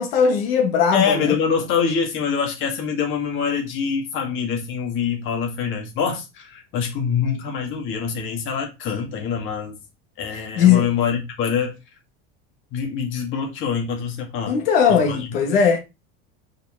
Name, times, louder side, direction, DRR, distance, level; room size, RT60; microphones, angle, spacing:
voice 1, 0.0-1.4 10.6-10.9 14.5-15.8, left 7 dB, 75° left, 1.7 m, -18 dB
voice 2, 0.9-9.8 10.2-11.8 12.7-14.6 15.1-15.2, left 6 dB, 40° left, 2.0 m, -25 dB
5.0 x 4.7 x 4.6 m
supercardioid pair, 150°, 30 cm